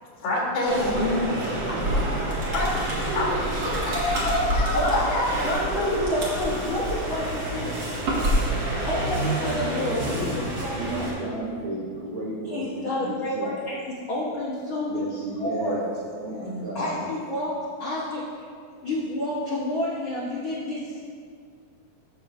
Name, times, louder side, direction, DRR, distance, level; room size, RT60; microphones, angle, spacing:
voice 1, 0.2-1.6 2.2-2.8 3.2-5.5 16.4-16.8, left 2 dB, 80° left, -5 dB, 3.9 m, -27 dB
sound 1, 0.6-11.1, right 1 dB, 50° right, 2.7 m, -27 dB
voice 2, 5.4-7.9 8.8-11.1 12.5-15.8 16.7-18.2 18.8-21.0, left 1 dB, 55° left, -9 dB, 1.5 m, -29 dB
voice 3, 10.8-13.6 14.9-15.9 16.2-17.1, right 1 dB, 70° right, -5 dB, 1.8 m, -33 dB
14.5 x 7.0 x 2.7 m, 2.1 s
omnidirectional pair, 4.2 m